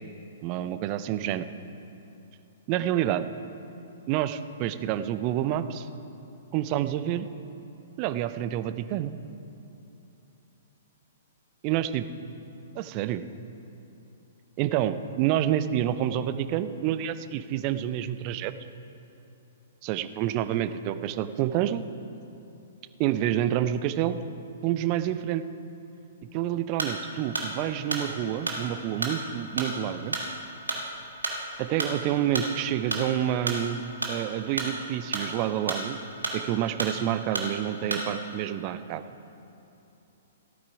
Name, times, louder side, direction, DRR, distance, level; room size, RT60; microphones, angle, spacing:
voice 1, 0.4-1.5 2.7-3.3 4.1-5.9 6.5-7.3 8.0-9.2 11.6-12.1 12.8-13.2 14.6-18.5 19.8-21.8 23.0-24.2 24.6-25.5 26.3-30.2 31.6-36.0 36.3-39.0, right 11 dB, 35° right, 12 dB, 0.5 m, -28 dB
sound 1, 26.8-27.0 27.3-32.5 32.9-34.2 34.5-36.0 36.2-37.0 37.3-37.5 37.9-38.1, right 2 dB, 75° right, 1.7 m, -31 dB
15.0 x 8.8 x 4.8 m, 2.9 s
figure-of-eight pair, 115°, 0 cm